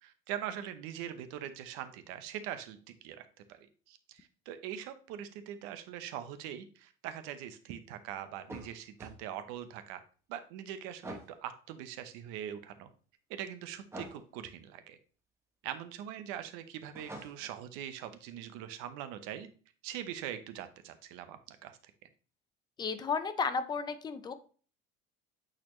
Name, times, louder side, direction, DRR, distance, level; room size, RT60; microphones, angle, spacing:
voice 1, 0.0-3.6 3.9-10.0 10.3-12.9 13.3-15.0 15.6-19.5 19.8-21.8, right 10 dB, 90° right, 10 dB, 0.8 m, -42 dB
sound 1, 8.4-9.2 11.0-11.4 13.9-14.2 16.9-17.6, right 1 dB, 10° right, 1.1 m, -45 dB
voice 2, 22.8-24.3, left 5 dB, 20° left, 11 dB, 0.4 m, -33 dB
8.7 x 4.2 x 3.0 m, 0.40 s
cardioid pair, 170°, 21 cm